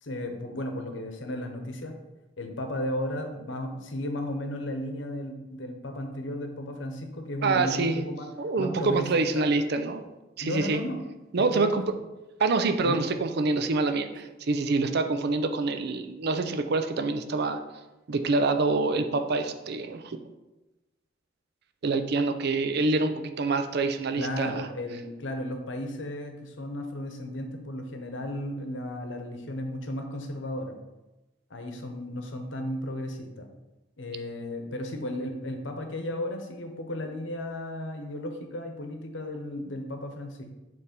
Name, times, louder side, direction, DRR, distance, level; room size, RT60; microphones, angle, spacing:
voice 1, 0.0-1.9 2.4-8.3 8.6-9.4 10.4-11.0 11.3-11.8 12.8-13.0 24.2-30.7 31.5-33.4 34.0-40.5, left 1 dB, 70° left, 5 dB, 0.9 m, -34 dB
voice 2, 7.4-8.0 8.4-10.1 10.4-10.8 11.3-11.8 12.4-17.6 18.1-20.2 21.8-24.7, right 3 dB, 60° right, 8 dB, 0.5 m, -26 dB
7.0 x 3.4 x 5.1 m, 1.0 s
head